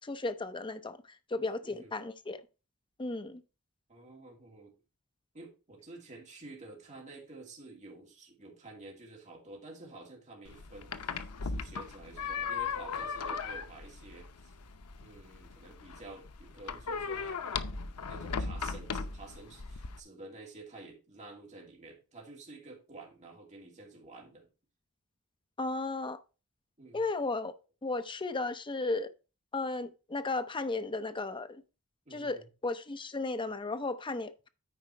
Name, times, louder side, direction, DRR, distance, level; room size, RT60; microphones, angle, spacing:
voice 1, 0.0-2.4 3.0-3.4 25.6-26.2 26.9-29.1 29.5-31.6 32.1-34.5, left 3 dB, 20° left, 0.6 m, -35 dB
voice 2, 3.9-4.7 5.3-14.5 15.0-24.5 26.8-27.0 32.1-32.4, right 2 dB, 35° right, 2.5 m, -50 dB
sound 1, 10.5-20.0, left 5 dB, 90° left, 0.7 m, -38 dB
9.2 x 4.7 x 4.4 m
head